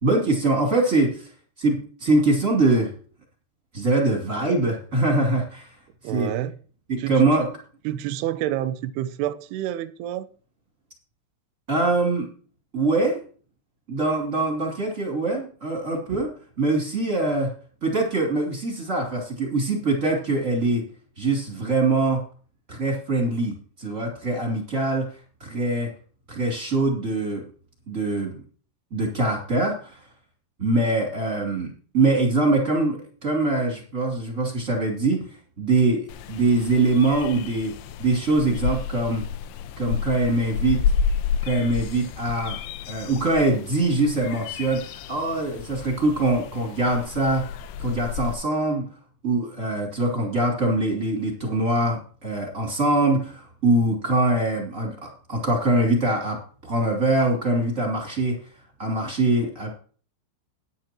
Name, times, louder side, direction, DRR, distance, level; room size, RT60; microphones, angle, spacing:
voice 1, 0.0-1.3 1.6-2.9 3.7-5.8 6.1-6.3 6.9-7.5 11.7-12.3 12.7-13.2 13.9-16.3 16.6-17.5 17.8-20.9 21.2-22.2 22.7-25.9 26.3-27.4 27.9-28.4 28.9-30.1 30.6-35.2 35.6-37.7 38.0-39.2 39.8-40.8 41.4-47.4 47.8-48.8 49.2-58.5 58.8-59.7, right 2 dB, 20° right, 2.3 m, -23 dB
voice 2, 6.0-6.5 7.0-7.5 7.9-10.3, right 12 dB, 85° right, 2.3 m, -29 dB
sound 1, 36.1-48.3, left 7 dB, 85° left, 3.2 m, -31 dB
14.0 x 10.5 x 3.0 m
omnidirectional pair, 5.6 m